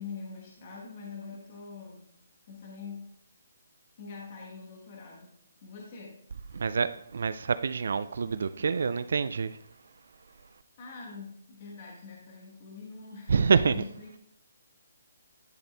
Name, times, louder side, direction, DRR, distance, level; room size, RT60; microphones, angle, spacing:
voice 1, 0.0-2.1 2.5-3.0 4.0-6.2 10.8-14.2, left 5 dB, 30° left, 1.2 m, -44 dB
voice 2, 6.6-9.5 13.3-13.7, right 5 dB, 60° right, 0.3 m, -26 dB
10.5 x 4.3 x 3.4 m
hypercardioid pair, 170°, 0 cm